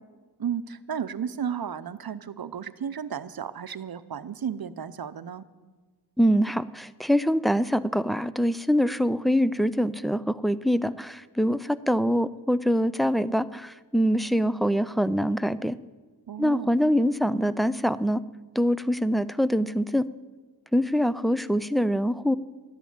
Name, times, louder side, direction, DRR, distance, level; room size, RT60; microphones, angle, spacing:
voice 1, 0.4-5.5 16.3-16.7, right 8 dB, 60° right, 13 dB, 0.8 m, -33 dB
voice 2, 6.2-15.8 16.4-18.2 18.6-20.1 20.7-22.4, equal, ahead, 16 dB, 0.4 m, -24 dB
12.5 x 10.5 x 8.6 m, 1.3 s
wide cardioid pair, 65°, 41 cm